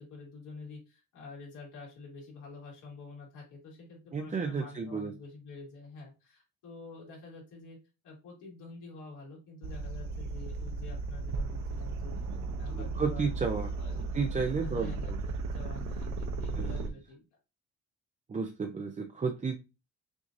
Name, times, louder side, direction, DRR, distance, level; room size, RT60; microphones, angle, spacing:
voice 1, 0.0-7.8 8.0-12.2 12.6-13.3 13.7-14.1 14.6-17.2, left 3 dB, 90° left, -3 dB, 2.7 m, -48 dB
voice 2, 4.1-5.1 13.0-13.7 14.0-15.2 16.5-16.9 18.3-19.6, right 5 dB, 25° right, 3 dB, 0.6 m, -32 dB
sound 1, 9.6-16.9, right 3 dB, 70° right, 0.6 m, -35 dB
6.0 x 2.7 x 2.6 m, 0.28 s
cardioid pair, 90°, 30 cm